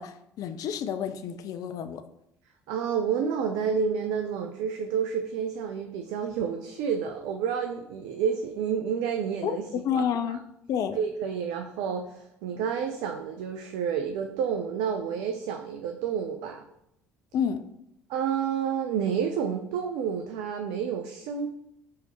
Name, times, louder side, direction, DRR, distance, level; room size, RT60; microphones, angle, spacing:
voice 1, 0.0-2.0 9.4-9.5 9.8-10.4 10.7-11.0 17.3-17.6, left 8 dB, 50° left, 9 dB, 0.4 m, -29 dB
voice 2, 2.7-9.6 9.9-10.0 10.9-16.6 18.1-21.5, right 7 dB, 60° right, 4 dB, 0.4 m, -29 dB
4.6 x 3.4 x 3.0 m, 0.79 s
figure-of-eight pair, 60°, 8 cm